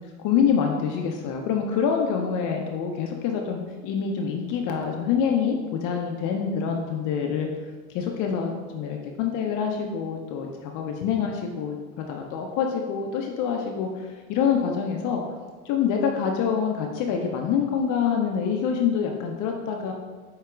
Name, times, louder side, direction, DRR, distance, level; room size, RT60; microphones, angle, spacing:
voice 1, 0.2-7.5 7.9-15.2 15.6-19.9, left 7 dB, 45° left, 2 dB, 0.5 m, -26 dB
7.6 x 2.8 x 2.4 m, 1.4 s
hypercardioid pair, 95°, 44 cm